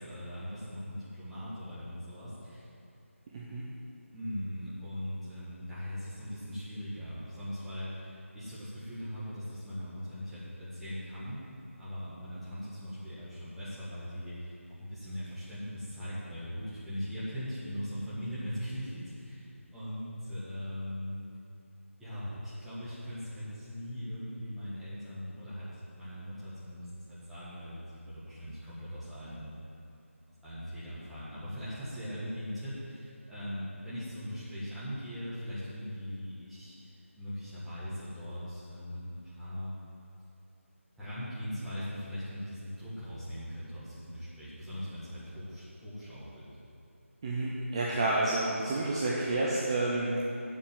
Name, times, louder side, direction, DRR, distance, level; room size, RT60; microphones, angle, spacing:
voice 1, 0.0-2.7 4.1-11.5 11.8-21.2 22.0-29.5 30.4-39.7 41.0-46.5, equal, ahead, -15 dB, 1.8 m, -40 dB
voice 2, 3.3-3.7 47.2-50.2, right 2 dB, 20° right, -5 dB, 0.8 m, -30 dB
8.6 x 7.5 x 7.7 m, 2.6 s
figure-of-eight pair, 165°, 8 cm